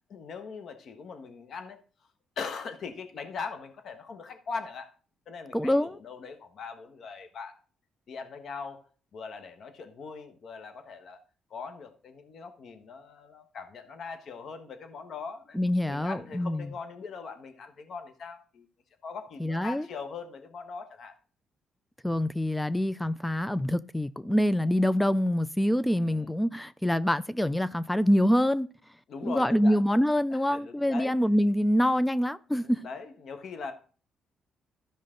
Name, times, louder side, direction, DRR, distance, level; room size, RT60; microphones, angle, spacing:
voice 1, 0.1-1.8 2.4-4.9 5.3-7.6 8.1-8.8 9.1-11.2 11.5-15.6 15.9-18.7 19.0-21.1 25.9-26.3 29.1-29.8 30.5-31.1 32.6-33.7, left 5 dB, 60° left, 1.3 m, -40 dB
voice 2, 5.5-6.0 15.5-16.7 19.4-19.9 22.0-28.7 29.2-32.9, equal, 5° left, 0.4 m, -25 dB
13.0 x 5.3 x 3.8 m
cardioid pair, 90°, 0 cm